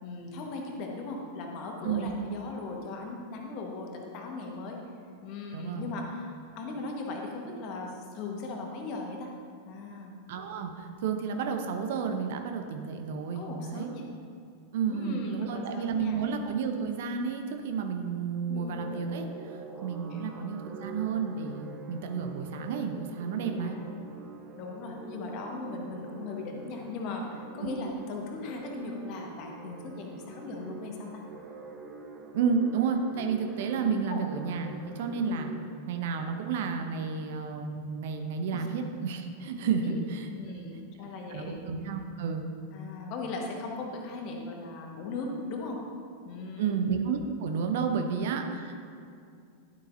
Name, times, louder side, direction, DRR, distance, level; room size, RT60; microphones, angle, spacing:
voice 1, 0.0-4.8 5.2-9.3 9.7-10.2 13.3-14.1 14.9-16.2 18.5-18.8 20.1-20.4 23.6-24.2 24.5-31.2 34.1-34.2 38.5-38.7 39.8-40.0 40.3-41.6 42.7-45.8 46.2-46.8 48.0-48.1, left 3 dB, 40° left, 1 dB, 1.3 m, -38 dB
voice 2, 1.8-2.2 5.5-6.0 10.3-13.9 14.7-23.7 32.3-35.5 35.9-40.6 41.3-42.4 46.6-48.7, right 6 dB, 55° right, 5 dB, 0.7 m, -31 dB
sound 1, 18.5-35.6, right 3 dB, 25° right, 0.8 m, -45 dB
11.5 x 7.9 x 2.7 m, 2.4 s
figure-of-eight pair, 90°, 0 cm